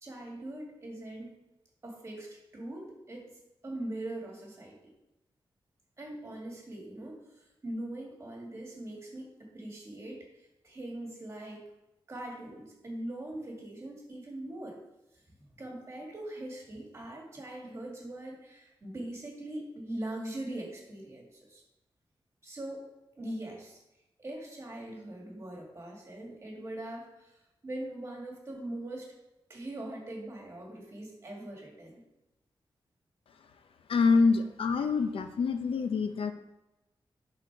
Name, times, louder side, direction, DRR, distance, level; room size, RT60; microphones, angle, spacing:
voice 1, 0.0-1.3 1.8-3.3 3.6-4.8 6.0-11.6 12.1-14.8 15.4-21.6 22.4-22.8 23.1-23.8 24.2-29.1 29.5-32.0, right 1 dB, 30° right, -1 dB, 2.0 m, -41 dB
voice 2, 33.9-36.3, left 4 dB, 85° left, 8 dB, 0.6 m, -26 dB
10.5 x 4.1 x 4.7 m, 0.94 s
wide cardioid pair, 180°, 9 cm